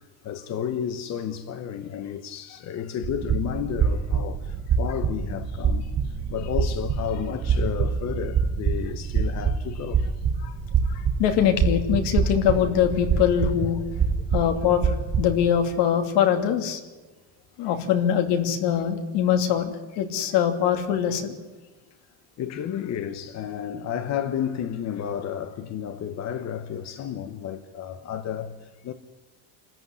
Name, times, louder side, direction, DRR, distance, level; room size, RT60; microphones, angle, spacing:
voice 1, 0.2-10.1 22.4-28.9, left 9 dB, 35° left, 1.0 m, -32 dB
sound 1, 3.0-15.5, right 6 dB, 25° right, 1.0 m, -26 dB
voice 2, 10.9-13.8 14.3-16.8 17.6-21.3, left 9 dB, 70° left, 2.9 m, -23 dB
27.0 x 14.0 x 9.9 m
cardioid pair, 175°, 44 cm